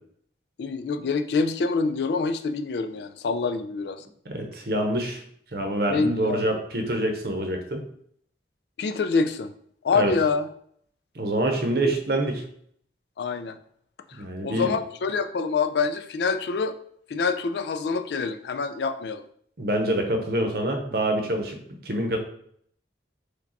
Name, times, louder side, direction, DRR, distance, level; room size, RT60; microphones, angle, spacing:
voice 1, 0.6-4.0 5.9-6.6 8.8-9.5 9.8-10.5 11.8-11.9 13.2-13.6 14.4-16.8 17.1-19.2, left 4 dB, 70° left, 9 dB, 0.4 m, -26 dB
voice 2, 4.2-5.2 5.5-7.8 9.9-10.1 11.1-12.4 14.2-14.7 19.6-21.6 21.8-22.2, right 1 dB, 55° right, 4 dB, 0.8 m, -26 dB
4.8 x 2.3 x 4.0 m, 0.65 s
head